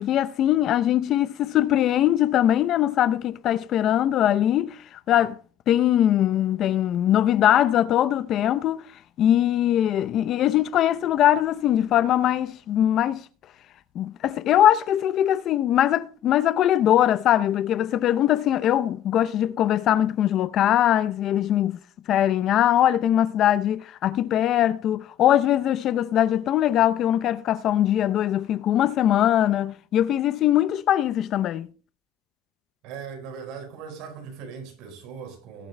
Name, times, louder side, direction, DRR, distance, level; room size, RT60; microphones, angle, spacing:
voice 1, 0.0-5.4 5.7-8.8 9.2-13.2 13.9-21.8 22.1-31.7, left 11 dB, 35° left, 0.6 m, -21 dB
voice 2, 32.8-35.7, right 6 dB, 55° right, 4.2 m, -39 dB
19.5 x 7.5 x 3.3 m
supercardioid pair, 155°, 0 cm